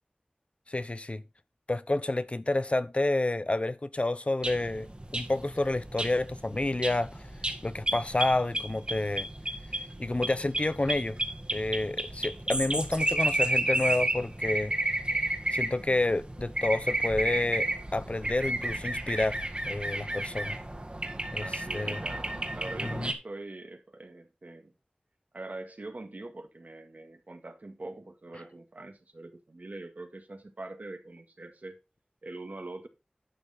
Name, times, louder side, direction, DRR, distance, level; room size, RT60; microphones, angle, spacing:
voice 1, 0.7-1.2 1.7-7.3 7.6-9.3 10.0-11.2 11.5-14.7 15.5-20.6 21.3-22.0 22.8-23.1, left 2 dB, 45° left, 0.7 m, -29 dB
sound 1, 4.4-23.1, right 1 dB, 40° right, 1.8 m, -32 dB
voice 2, 21.3-24.7 25.3-31.8 32.2-32.9, right 2 dB, 70° right, 1.8 m, -43 dB
11.5 x 6.4 x 4.2 m
wide cardioid pair, 50°, 3 cm